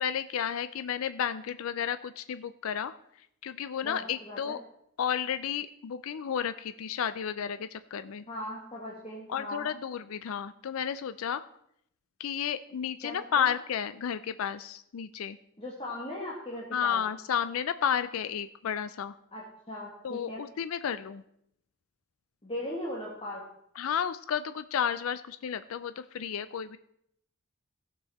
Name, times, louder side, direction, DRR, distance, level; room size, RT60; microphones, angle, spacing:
voice 1, 0.0-2.9 3.4-4.6 5.0-8.2 9.3-11.5 12.2-15.4 16.7-19.1 20.0-21.2 23.8-26.8, left 8 dB, 75° left, 13 dB, 0.4 m, -32 dB
voice 2, 3.8-4.6 8.3-9.7 13.0-13.5 15.6-17.0 19.3-20.5 22.4-23.5, left 1 dB, 25° left, -4 dB, 1.6 m, -39 dB
16.0 x 6.9 x 4.2 m, 0.75 s
head